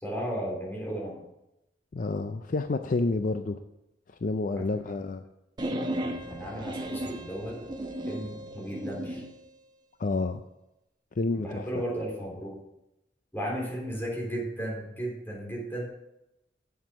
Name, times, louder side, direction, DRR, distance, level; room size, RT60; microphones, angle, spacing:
voice 1, 0.0-1.2 4.5-4.6 6.0-7.6 8.1-9.2 11.4-12.6 13.3-15.9, right 1 dB, 15° left, -3 dB, 3.6 m, -35 dB
voice 2, 1.9-3.6 4.2-5.2 10.0-10.4 11.2-11.8, left 3 dB, 50° left, 8 dB, 0.5 m, -29 dB
sound 1, 5.6-9.3, right 1 dB, 25° right, 0.8 m, -35 dB
8.1 x 7.4 x 6.3 m, 0.88 s
head